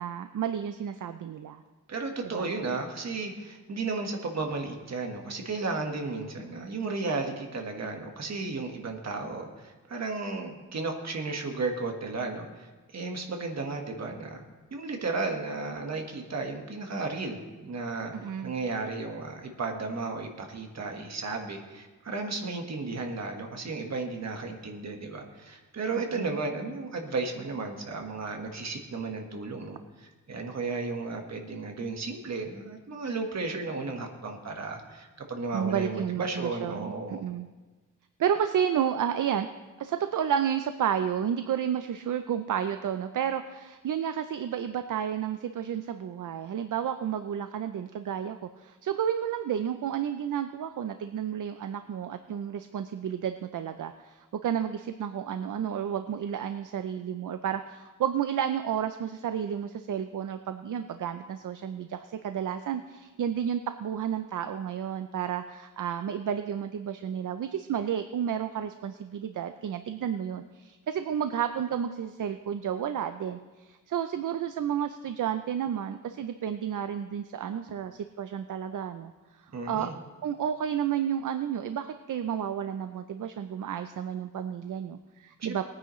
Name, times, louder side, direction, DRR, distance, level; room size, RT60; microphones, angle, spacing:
voice 1, 0.0-1.6 2.4-2.5 18.1-18.5 25.9-26.4 35.5-37.5 38.2-39.5 39.8-79.1 79.7-79.9 80.2-85.6, right 9 dB, 75° right, 9 dB, 0.6 m, -31 dB
voice 2, 1.9-12.7 12.9-14.4 14.7-18.1 18.4-37.2 79.5-80.0 85.4-85.6, right 3 dB, 55° right, 3 dB, 1.5 m, -34 dB
20.0 x 9.6 x 3.1 m, 1.2 s
wide cardioid pair, 150°, 32 cm